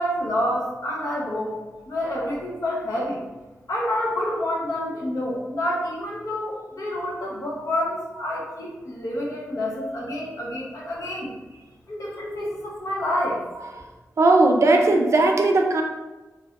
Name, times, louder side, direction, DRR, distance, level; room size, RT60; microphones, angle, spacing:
voice 1, 0.0-1.5 1.9-3.2 3.7-11.3 11.9-13.4, left 1 dB, 80° left, -3 dB, 0.8 m, -28 dB
voice 2, 14.2-15.8, right 2 dB, 60° right, 3 dB, 0.4 m, -17 dB
3.0 x 2.8 x 2.4 m, 1.1 s
wide cardioid pair, 85°, 6 cm